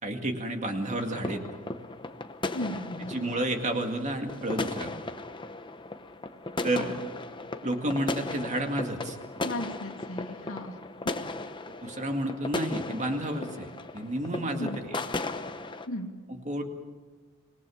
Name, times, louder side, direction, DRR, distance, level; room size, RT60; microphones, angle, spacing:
voice 1, 0.0-1.4 3.0-5.0 6.6-7.0 7.6-9.2 11.8-13.7 13.9-15.0 16.3-16.6, right 1 dB, 30° right, 4 dB, 2.1 m, -31 dB
sound 1, 0.8-15.9, left 2 dB, 20° left, 0.9 m, -37 dB
voice 2, 2.5-3.1 6.7-7.0 9.4-10.8 14.6-14.8 15.9-16.1, left 1 dB, 70° left, 3 dB, 2.6 m, -36 dB
25.5 x 20.5 x 7.2 m, 1.4 s
head